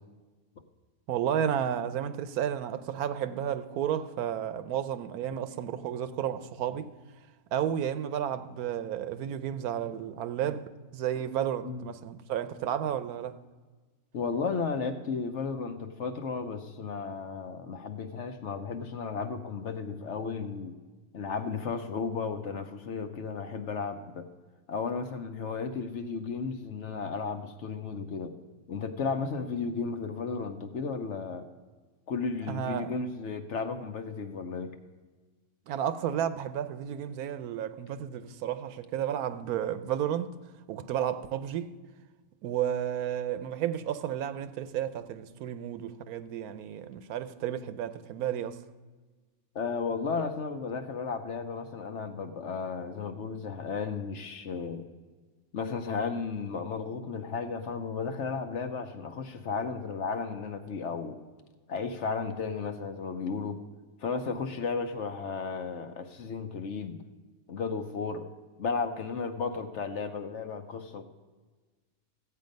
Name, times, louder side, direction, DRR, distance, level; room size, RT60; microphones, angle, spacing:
voice 1, 1.1-6.9 7.5-13.3 32.5-32.9 35.7-40.3 40.7-41.7 42.4-48.6, right 10 dB, 80° right, 1.1 m, -32 dB
voice 2, 11.6-11.9 14.1-20.7 21.1-24.3 24.7-28.4 28.7-31.5 32.1-34.7 49.5-54.9 55.5-61.2 61.7-63.6 64.0-67.0 67.5-68.3 68.6-71.0, left 5 dB, 60° left, 0.9 m, -34 dB
14.5 x 8.4 x 5.2 m
omnidirectional pair, 1.6 m